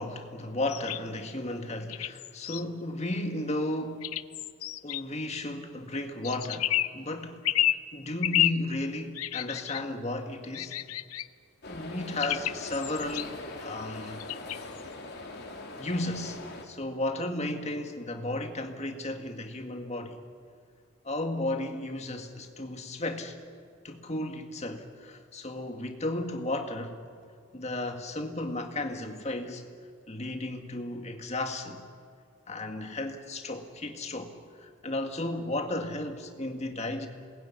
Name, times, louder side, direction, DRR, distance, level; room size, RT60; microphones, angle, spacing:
voice 1, 0.0-4.2 4.8-7.4 7.9-10.8 11.7-14.4 15.8-20.2 21.0-23.4 23.8-27.0 27.5-29.6 30.1-31.9 32.5-37.1, left 1 dB, 30° left, 5 dB, 1.9 m, -34 dB
sound 1, 0.7-1.0 1.9-2.6 4.0-5.0 6.2-7.0 7.4-7.8 8.2-8.6 9.2-9.8 10.5-11.3 12.2-13.3 14.2-14.8, left 13 dB, 90° left, 0.7 m, -30 dB
sound 2, 11.6-16.7, left 2 dB, 50° left, 3.1 m, -41 dB
27.0 x 20.5 x 9.7 m, 2.3 s
head